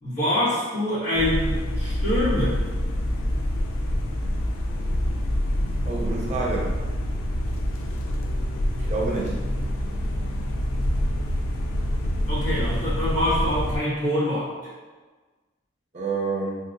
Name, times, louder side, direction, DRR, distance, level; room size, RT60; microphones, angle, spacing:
voice 1, 0.0-2.6 12.3-14.7, left 1 dB, 40° left, -13 dB, 1.5 m, -25 dB
sound 1, 1.1-13.8, equal, 80° left, 0.4 m, -26 dB
voice 2, 5.8-6.7 8.8-9.4 15.9-16.6, right 3 dB, 35° right, -3 dB, 0.6 m, -28 dB
2.9 x 2.8 x 2.5 m, 1.3 s
head